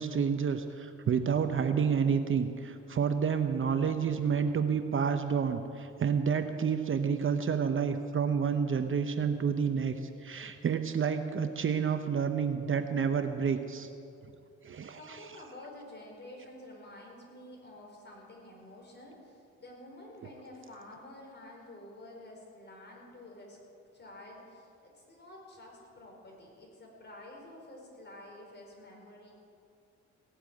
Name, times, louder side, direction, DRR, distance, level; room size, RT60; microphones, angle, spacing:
voice 1, 0.0-10.0 10.2-13.9 14.6-15.2, right 6 dB, 40° right, 7 dB, 0.9 m, -29 dB
voice 2, 14.9-23.6 23.9-29.3, left 1 dB, 35° left, -1 dB, 5.0 m, -50 dB
17.5 x 8.1 x 9.2 m, 2.5 s
cardioid pair, 90°, 30 cm